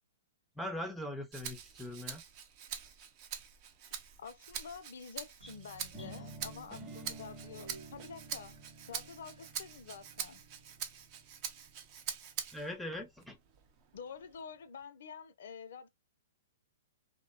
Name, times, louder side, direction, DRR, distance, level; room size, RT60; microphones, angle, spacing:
voice 1, 0.6-2.2 5.4-5.5 12.5-13.4, left 1 dB, 5° left, 0.6 m, -41 dB
Rattle (instrument), 1.3-12.8 13.2-14.4, right 8 dB, 40° right, 0.5 m, -45 dB
voice 2, 4.2-8.5 8.9-10.4 13.9-15.9, left 6 dB, 65° left, 0.5 m, -48 dB
Train, 5.4-10.7, right 4 dB, 80° right, 0.8 m, -58 dB
sound 1, 5.9-11.9, right 2 dB, 20° right, 0.8 m, -51 dB
2.5 x 2.1 x 2.3 m
hypercardioid pair, 125°, 0 cm